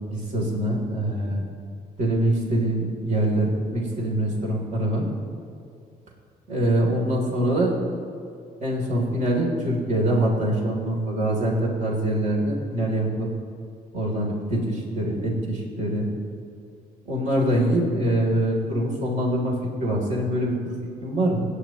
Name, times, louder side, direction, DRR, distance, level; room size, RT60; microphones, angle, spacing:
voice 1, 0.1-1.4 2.0-5.1 6.5-7.9 8.6-13.3 13.9-16.1 17.0-20.8 21.0-21.4, right 1 dB, 55° right, -2 dB, 3.4 m, -24 dB
29.5 x 9.9 x 3.1 m, 2.5 s
cardioid pair, 100°, 16 cm